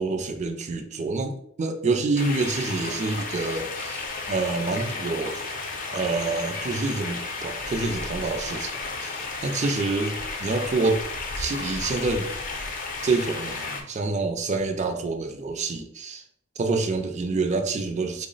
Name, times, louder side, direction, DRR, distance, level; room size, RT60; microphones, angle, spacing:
voice 1, 0.0-5.4 5.9-11.0 11.4-12.3 13.0-16.2 16.6-18.3, right 3 dB, 35° right, 6 dB, 0.4 m, -27 dB
sound 1, 2.2-13.8, left 3 dB, 40° left, 0.5 m, -33 dB
3.5 x 2.0 x 3.9 m, 0.68 s
head